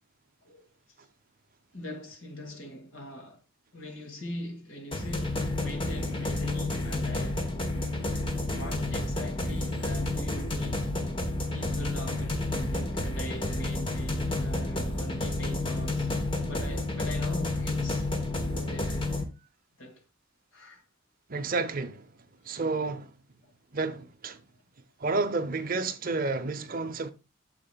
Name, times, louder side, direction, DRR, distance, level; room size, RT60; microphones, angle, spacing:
voice 1, 1.7-3.4 3.7-7.4 8.5-10.9 11.5-16.1 16.4-18.1 18.4-19.1 19.8-20.0 20.5-20.8, left 1 dB, 70° left, 2.1 m, -42 dB
sound 1, 4.9-19.2, left 2 dB, 25° left, 1.2 m, -30 dB
voice 2, 21.3-22.0 22.4-23.1 23.7-24.4 25.0-27.1, right 3 dB, 45° right, 0.7 m, -30 dB
9.2 x 6.7 x 2.3 m
head